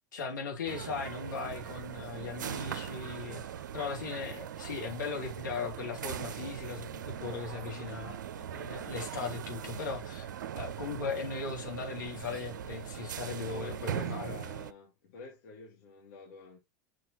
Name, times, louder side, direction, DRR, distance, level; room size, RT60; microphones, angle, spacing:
voice 1, 0.1-3.4 3.7-14.4, left 5 dB, 75° left, 2.7 m, -38 dB
sound 1, 0.7-14.7, right 9 dB, 75° right, 0.6 m, -40 dB
voice 2, 13.4-16.6, left 3 dB, 60° left, 2.2 m, -48 dB
7.3 x 6.2 x 2.9 m
figure-of-eight pair, 85°, 10 cm